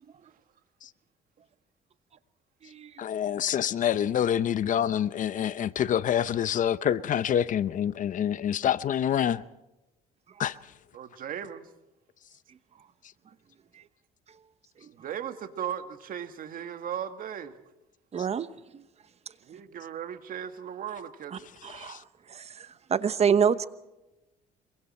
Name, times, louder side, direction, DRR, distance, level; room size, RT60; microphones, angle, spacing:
voice 1, 3.0-9.4 10.4-10.6 21.8-22.0, left 9 dB, 50° left, 0.7 m, -26 dB
voice 2, 10.9-11.7 14.9-17.5 19.4-21.5, right 9 dB, 55° right, 1.9 m, -37 dB
voice 3, 18.1-18.5 18.7-18.8 21.3-22.0 22.3-23.7, right 7 dB, 40° right, 1.0 m, -27 dB
28.0 x 23.5 x 4.4 m
cardioid pair, 110°, 17 cm